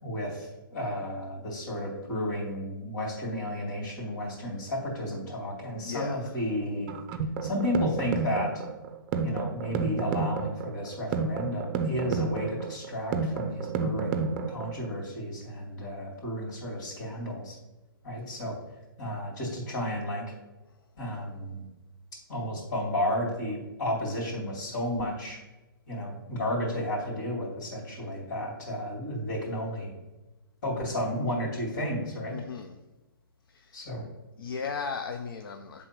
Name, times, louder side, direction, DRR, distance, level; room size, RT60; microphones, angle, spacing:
voice 1, 0.0-6.9 7.4-8.6 9.2-17.6 18.0-18.6 19.0-20.3 21.0-21.6 22.3-25.4 25.9-29.9 30.6-32.4 33.7-34.1, left 1 dB, 55° left, -4 dB, 2.7 m, -32 dB
voice 2, 5.8-6.3 32.3-32.8 33.5-33.8 34.4-35.9, left 5 dB, 75° left, 6 dB, 0.7 m, -36 dB
sound 1, 6.9-14.9, right 4 dB, 30° right, 0.6 m, -31 dB
7.8 x 3.7 x 5.8 m, 1.1 s
hypercardioid pair, 155°, 12 cm